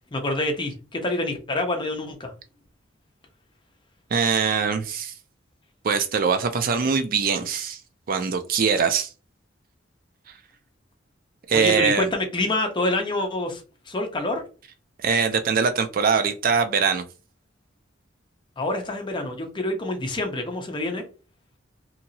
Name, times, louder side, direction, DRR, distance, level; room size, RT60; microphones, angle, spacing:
voice 1, 0.1-2.3 11.5-14.4 18.6-21.0, left 2 dB, 25° left, 0.6 m, -27 dB
voice 2, 4.1-5.1 5.8-7.8 8.1-9.1 11.5-12.1 15.0-17.0, right 6 dB, 45° right, 0.4 m, -22 dB
2.8 x 2.6 x 2.7 m
head